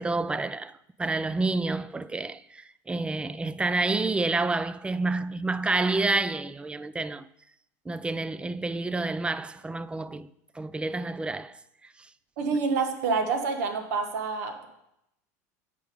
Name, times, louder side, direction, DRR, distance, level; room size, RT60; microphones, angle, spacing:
voice 1, 0.0-7.3 7.9-10.3 10.6-11.6, right 3 dB, 10° right, 0.3 m, -29 dB
voice 2, 12.4-14.7, right 4 dB, 75° right, 1.2 m, -27 dB
8.3 x 4.9 x 5.3 m
hypercardioid pair, 95°, 9 cm